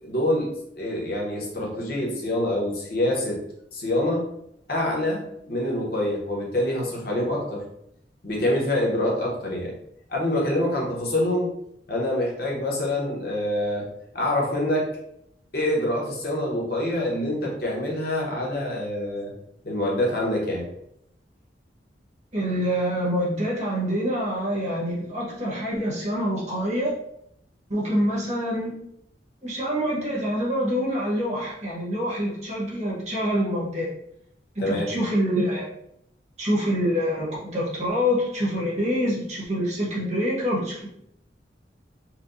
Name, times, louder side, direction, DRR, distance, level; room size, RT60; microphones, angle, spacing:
voice 1, 0.0-3.4 3.7-4.2 4.7-7.6 8.2-9.7 10.1-11.6 11.9-13.9 14.1-14.9 15.5-19.3 19.6-20.7 34.6-34.9, left 1 dB, 55° left, -3 dB, 1.0 m, -26 dB
voice 2, 22.3-26.9 27.7-28.8 29.4-33.9 34.5-35.7 36.4-40.9, equal, 40° right, -5 dB, 1.2 m, -26 dB
4.4 x 2.3 x 2.6 m, 0.75 s
head